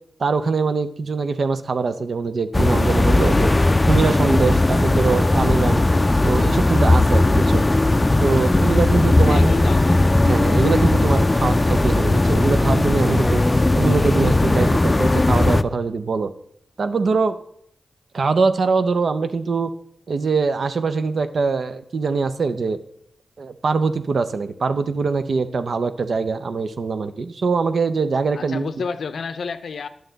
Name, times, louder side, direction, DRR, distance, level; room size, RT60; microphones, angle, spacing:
voice 1, 0.2-3.5 3.8-5.8 6.2-7.6 8.2-9.5 10.2-13.4 13.8-16.3 16.8-17.4 18.1-19.7 20.1-22.8 23.4-28.7, right 4 dB, 75° right, 10 dB, 0.4 m, -22 dB
sound 1, 2.5-15.6, left 2 dB, 25° left, 0.4 m, -17 dB
voice 2, 9.2-10.2 28.3-29.9, left 5 dB, 85° left, 11 dB, 0.5 m, -30 dB
9.0 x 6.4 x 3.9 m, 0.71 s
cardioid pair, 55°, 0 cm